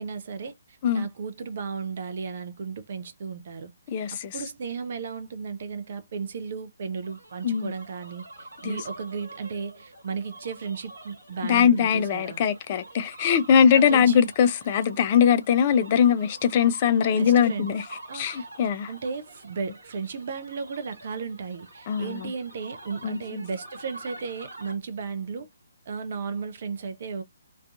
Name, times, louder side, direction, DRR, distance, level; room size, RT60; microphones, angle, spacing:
voice 1, 0.0-3.7 4.1-12.4 13.7-14.3 17.1-17.7 18.1-18.5 18.9-25.5 25.9-27.2, right 5 dB, 45° right, 0.4 m, -35 dB
voice 2, 3.9-4.4 7.4-7.7 8.6-8.8 11.4-18.9 21.9-22.3 23.0-23.4, left 8 dB, 30° left, 0.4 m, -22 dB
sound 1, 7.0-24.8, right 2 dB, 65° right, 1.0 m, -46 dB
2.4 x 2.2 x 2.4 m
figure-of-eight pair, 135°, 0 cm